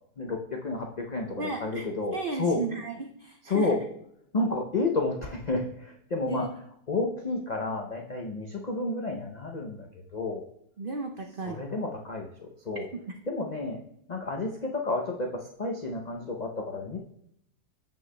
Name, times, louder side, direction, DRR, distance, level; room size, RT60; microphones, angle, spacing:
voice 1, 0.2-2.6 3.4-3.8 4.3-6.5 6.9-10.5 11.5-12.9 13.3-13.8 14.1-17.0, left 3 dB, 75° left, 2 dB, 0.4 m, -31 dB
voice 2, 1.4-1.9 2.1-3.7 6.3-6.5 10.8-11.6 12.9-13.0, right 3 dB, 85° right, 4 dB, 0.4 m, -34 dB
16.0 x 5.4 x 2.2 m, 0.73 s
omnidirectional pair, 1.7 m